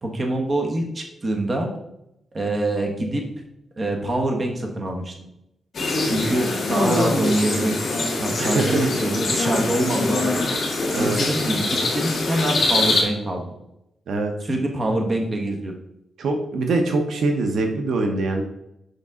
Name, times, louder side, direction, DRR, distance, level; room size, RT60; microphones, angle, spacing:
voice 1, 0.0-1.7 2.3-3.2 3.8-5.1 6.0-10.5 10.9-13.4 14.4-15.7, right 1 dB, 25° right, 2 dB, 1.1 m, -25 dB
sound 1, 5.7-13.0, left 2 dB, 45° left, 1.9 m, -23 dB
voice 2, 8.4-8.9 10.9-11.2 14.1-14.3 16.2-18.4, right 2 dB, 70° right, 4 dB, 0.8 m, -23 dB
6.7 x 5.3 x 3.7 m, 0.83 s
wide cardioid pair, 160°, 0 cm